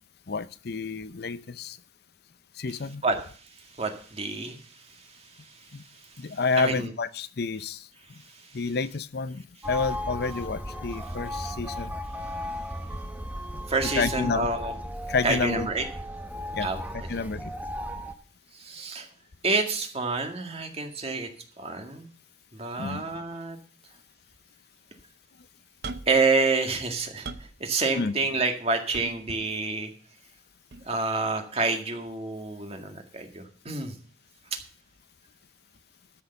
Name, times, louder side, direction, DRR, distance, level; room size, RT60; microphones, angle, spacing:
voice 1, 0.3-1.8 2.6-3.0 5.7-5.8 6.2-7.9 8.5-11.9 12.9-13.0 13.8-14.5 15.1-15.7 16.5-16.7 17.1-17.5 22.8-23.0 28.0-28.1, left 4 dB, 60° left, 16 dB, 0.6 m, -29 dB
voice 2, 3.8-4.6 6.6-6.9 13.7-14.7 15.2-15.9 16.6-16.8 17.1-17.2 18.5-19.1 19.4-21.3 21.6-22.1 22.5-23.6 26.1-27.3 27.6-29.9 30.9-33.9, right 3 dB, 35° right, 4 dB, 2.0 m, -28 dB
sound 1, 9.6-18.1, left 1 dB, 10° right, 1.0 m, -35 dB
sound 2, 25.8-26.3 26.8-27.6 28.9-29.5 30.7-30.9, right 3 dB, 65° right, 0.8 m, -39 dB
13.0 x 6.8 x 6.8 m, 0.42 s
head